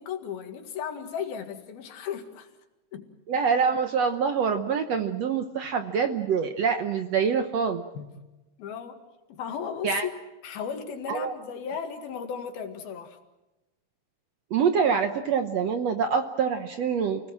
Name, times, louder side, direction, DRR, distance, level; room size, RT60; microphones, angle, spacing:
voice 1, 0.0-2.5 2.9-3.1 7.9-8.2 8.6-9.0 9.3-10.1 10.4-13.2, left 7 dB, 90° left, 6 dB, 3.8 m, -35 dB
voice 2, 3.3-7.8 9.8-10.1 11.1-11.3 14.5-17.2, right 6 dB, 65° right, 7 dB, 1.7 m, -25 dB
29.5 x 19.0 x 7.5 m, 1.0 s
omnidirectional pair, 4.2 m